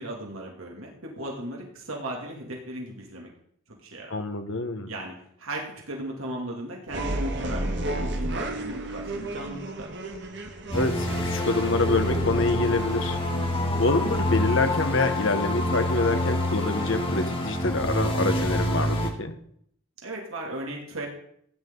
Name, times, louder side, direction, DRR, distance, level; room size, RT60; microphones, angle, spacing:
voice 1, 0.0-3.3 3.7-4.1 4.9-9.9 20.0-21.1, right 1 dB, 80° right, -1 dB, 2.7 m, -36 dB
voice 2, 4.1-4.9 10.7-13.2 13.7-19.4, left 2 dB, 65° left, 7 dB, 1.4 m, -26 dB
sound 1, 6.9-15.5, right 1 dB, 55° right, 1.5 m, -33 dB
sound 2, 10.7-19.1, left 1 dB, 25° left, 1.7 m, -27 dB
15.5 x 9.7 x 4.0 m, 0.67 s
head